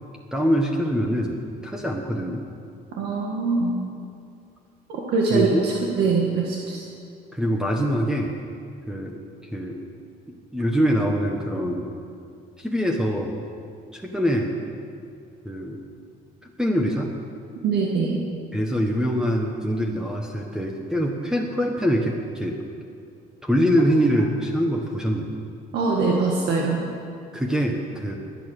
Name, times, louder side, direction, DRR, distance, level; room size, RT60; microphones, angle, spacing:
voice 1, 0.3-2.4 5.3-5.7 7.3-8.3 8.9-9.2 9.5-9.8 10.5-11.9 12.6-13.4 13.9-14.6 15.4-15.8 16.6-17.1 18.5-22.6 23.4-25.4 27.3-28.2, equal, 5° right, 1 dB, 1.3 m, -24 dB
voice 2, 3.0-3.8 4.9-6.8 17.6-18.2 25.7-26.8, right 4 dB, 75° right, -2 dB, 1.9 m, -23 dB
21.0 x 8.9 x 6.5 m, 2.5 s
cardioid pair, 110°, 17 cm